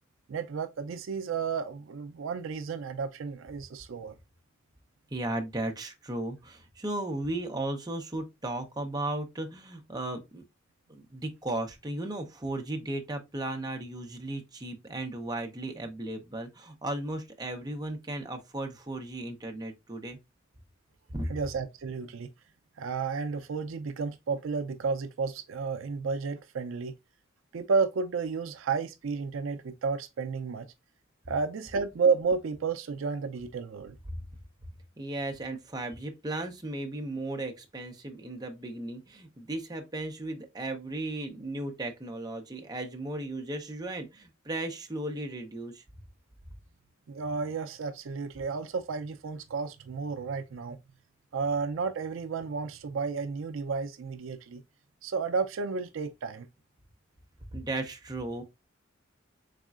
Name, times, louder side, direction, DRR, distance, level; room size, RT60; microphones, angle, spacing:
voice 1, 0.3-4.1 21.3-22.3 22.8-26.9 27.5-30.7 31.3-34.0 47.1-50.8 51.3-54.6 55.0-56.5, right 5 dB, 70° right, 0.4 m, -32 dB
voice 2, 5.1-10.4 10.9-20.2 21.1-21.3 34.1-34.2 35.0-45.8 57.5-58.4, right 2 dB, 20° right, 0.7 m, -35 dB
4.1 x 3.6 x 2.3 m
head